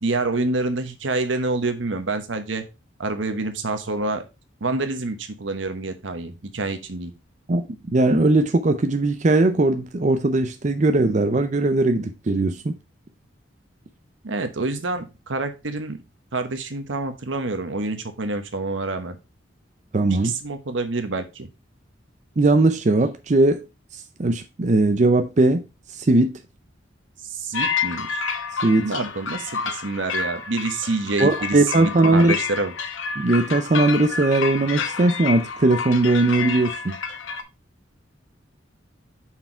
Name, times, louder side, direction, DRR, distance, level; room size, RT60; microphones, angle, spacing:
voice 1, 0.0-2.6 3.0-4.2 4.6-7.1 14.2-16.0 16.3-19.2 20.1-21.5 27.3-28.2 28.8-32.7, right 3 dB, 80° right, 1.1 m, -27 dB
voice 2, 7.9-12.7 19.9-20.3 22.4-23.7 24.2-25.6 25.9-26.4 28.6-28.9 31.2-32.3 33.2-37.0, right 2 dB, 40° right, 0.5 m, -19 dB
sound 1, 27.5-37.4, left 5 dB, 90° left, 0.9 m, -29 dB
5.8 x 4.6 x 4.4 m
head